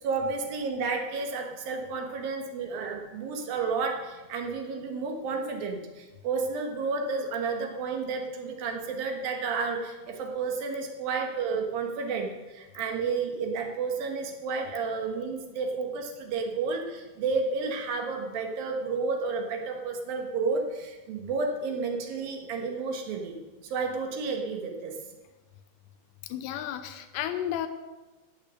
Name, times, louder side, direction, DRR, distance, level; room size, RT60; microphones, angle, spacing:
voice 1, 0.0-23.4 23.6-24.9, right 4 dB, 65° right, 2 dB, 2.8 m, -31 dB
voice 2, 26.3-27.7, left 11 dB, 90° left, 8 dB, 2.9 m, -32 dB
17.0 x 6.3 x 6.6 m, 1.2 s
omnidirectional pair, 5.1 m